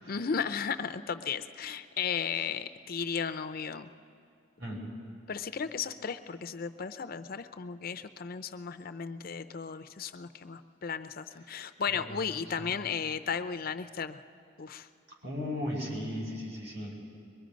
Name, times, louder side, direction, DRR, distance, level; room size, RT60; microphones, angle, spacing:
voice 1, 0.1-3.9 5.3-14.2 14.6-14.9, left 6 dB, 50° left, 11 dB, 0.5 m, -35 dB
voice 2, 15.2-16.9, left 1 dB, 70° right, -2 dB, 5.3 m, -36 dB
23.0 x 22.0 x 5.2 m, 2.4 s
head